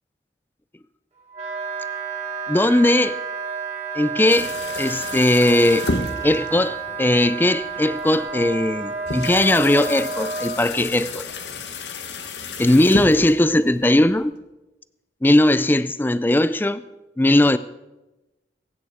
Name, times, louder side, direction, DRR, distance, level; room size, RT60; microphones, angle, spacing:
Wind instrument woodwind instrument, 1.3-10.6, right 5 dB, 40° right, 2.9 m, -30 dB
voice 1, 2.5-3.2 3.9-5.9 6.2-11.2 12.6-14.3 15.2-16.8 17.2-17.6, left 1 dB, 10° left, 0.4 m, -18 dB
sound 1, 4.3-14.3, left 3 dB, 80° left, 1.5 m, -33 dB
22.5 x 9.6 x 5.0 m
head